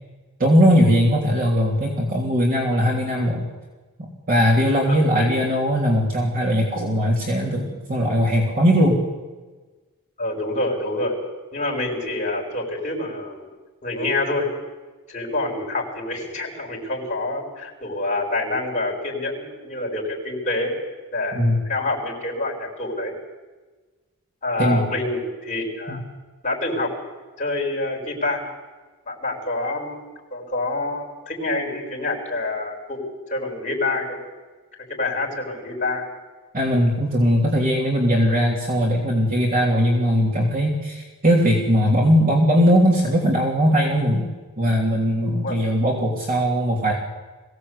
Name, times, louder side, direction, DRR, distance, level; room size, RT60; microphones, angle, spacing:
voice 1, 0.4-3.5 4.0-9.0 21.3-21.6 24.6-24.8 25.9-26.0 36.5-44.3 44.6-46.9, equal, 40° right, -2 dB, 3.4 m, -19 dB
voice 2, 4.9-5.3 10.2-11.2 11.5-13.5 13.8-14.5 15.1-20.7 21.1-23.1 24.4-26.0 26.4-26.9 27.4-28.5 29.1-34.2 34.9-36.1 45.4-45.6, left 2 dB, 35° left, -2 dB, 5.7 m, -27 dB
22.5 x 17.5 x 8.4 m, 1.3 s
head